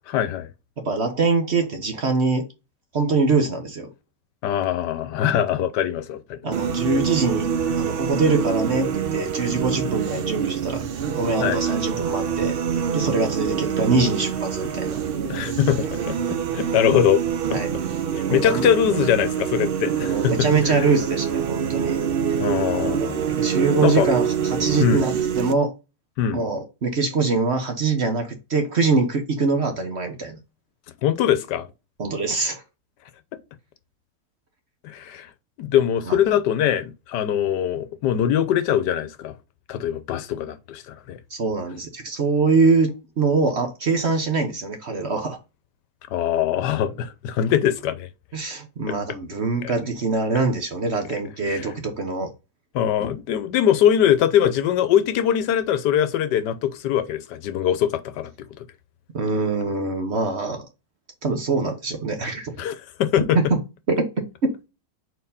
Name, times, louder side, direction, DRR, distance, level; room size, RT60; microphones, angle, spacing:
voice 1, 0.1-0.5 4.4-6.4 11.4-11.6 15.2-16.2 16.5-17.2 17.5-17.6 18.1-20.3 20.7-20.8 22.4-23.2 23.8-24.1 24.8-25.0 26.2-26.4 31.0-31.7 34.8-35.3 35.6-39.3 39.7-41.2 46.1-48.1 48.9-49.0 49.6-49.7 51.4-51.7 52.7-58.3 62.6-63.4, left 10 dB, 80° left, 1.3 m, -22 dB
voice 2, 0.8-2.5 2.9-3.9 6.4-7.5 7.8-12.6 12.9-15.0 17.5-17.7 18.3-18.6 20.0-22.0 23.3-25.7 26.3-30.4 32.0-32.6 36.1-36.2 41.3-45.4 48.3-52.3 59.1-60.6 61.2-62.5 63.3-63.6 63.9-64.5, right 3 dB, 45° right, 1.1 m, -23 dB
sound 1, 6.5-25.5, right 8 dB, 90° right, 0.5 m, -25 dB
4.4 x 4.2 x 5.4 m
omnidirectional pair, 1.8 m